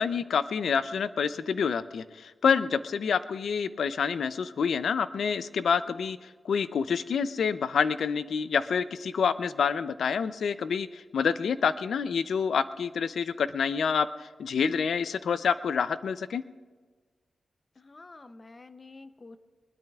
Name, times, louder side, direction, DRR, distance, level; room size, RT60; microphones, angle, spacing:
voice 1, 0.0-16.4, left 6 dB, 85° left, 13 dB, 0.5 m, -28 dB
voice 2, 17.8-19.4, left 3 dB, 30° left, 10 dB, 0.6 m, -49 dB
23.0 x 21.0 x 2.4 m, 1.4 s
wide cardioid pair, 165°, 0 cm